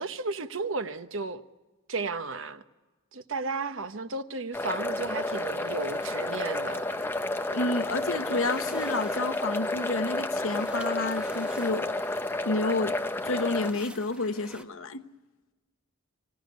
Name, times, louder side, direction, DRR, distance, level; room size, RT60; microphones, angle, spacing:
voice 1, 0.0-1.4 1.9-2.6 3.1-6.9, right 3 dB, 70° right, 1.0 m, -33 dB
sound 1, 4.5-13.7, left 2 dB, 10° left, 0.7 m, -31 dB
sound 2, 5.3-14.6, equal, 5° right, 1.1 m, -49 dB
voice 2, 7.5-11.9 12.4-12.9 13.2-15.0, left 3 dB, 75° left, 1.1 m, -30 dB
25.0 x 17.0 x 9.5 m
head